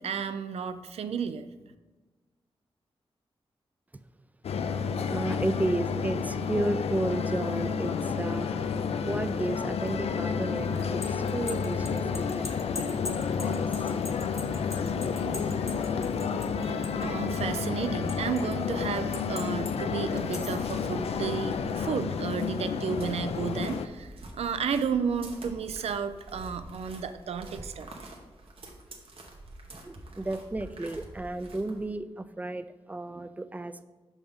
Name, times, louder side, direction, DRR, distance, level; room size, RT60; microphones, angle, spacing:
voice 1, 0.0-1.5 16.6-24.1 24.4-27.9, right 6 dB, 90° right, 10 dB, 0.4 m, -32 dB
sound 1, 4.4-23.9, left 6 dB, 80° left, 0.4 m, -30 dB
voice 2, 5.1-8.5 9.1-12.5 13.4-13.6 29.7-33.8, right 2 dB, 15° right, 12 dB, 0.3 m, -33 dB
sound 2, 10.8-17.1 17.3-18.5 19.1-19.7 20.2-20.7, left 3 dB, 30° left, 0.7 m, -41 dB
sound 3, 20.0-31.9, right 2 dB, 65° right, 1.0 m, -47 dB
5.8 x 5.3 x 3.6 m, 1.2 s
wide cardioid pair, 75°, 10 cm